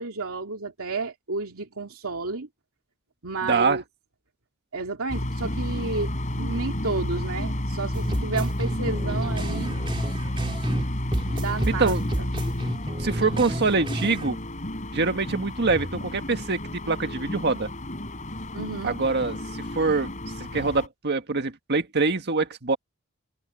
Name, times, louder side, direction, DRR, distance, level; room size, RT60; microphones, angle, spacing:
voice 1, 0.0-2.5 3.2-3.8 4.7-6.1 6.4-9.8 11.3-12.3 18.5-19.0, right 3 dB, 90° right, 2.6 m, -31 dB
voice 2, 3.4-3.8 11.7-12.0 13.0-14.4 14.9-16.6 16.9-17.7 18.8-20.1 20.5-22.8, right 3 dB, 50° right, 1.8 m, -24 dB
sound 1, 5.1-20.9, left 1 dB, 35° left, 4.3 m, -31 dB
sound 2, 7.9-10.8 11.1-14.3, equal, 25° right, 2.7 m, -31 dB
head